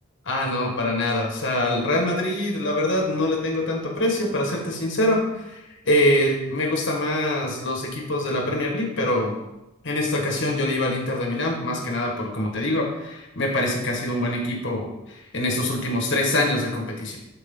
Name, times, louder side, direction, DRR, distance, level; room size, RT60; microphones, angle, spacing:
voice 1, 0.2-9.3 9.8-17.2, left 1 dB, 60° left, 0 dB, 1.8 m, -24 dB
11.0 x 4.5 x 3.9 m, 0.95 s
head